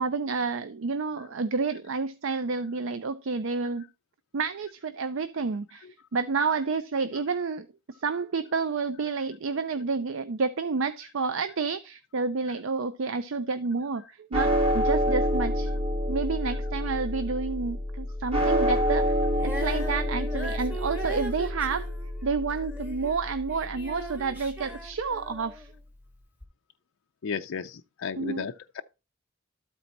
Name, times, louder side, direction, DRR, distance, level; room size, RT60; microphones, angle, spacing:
voice 1, 0.0-3.8 4.3-5.9 6.1-7.7 8.0-15.7 16.1-19.2 19.4-21.9 22.2-25.7 28.2-28.5, right 4 dB, 70° right, 0.5 m, -29 dB
sound 1, 14.3-24.7, equal, 25° right, 1.6 m, -28 dB
Female singing, 19.3-25.7 26.4-26.5, equal, 10° right, 1.4 m, -39 dB
voice 2, 27.2-28.8, left 6 dB, 70° left, 0.4 m, -34 dB
12.5 x 4.5 x 4.0 m
head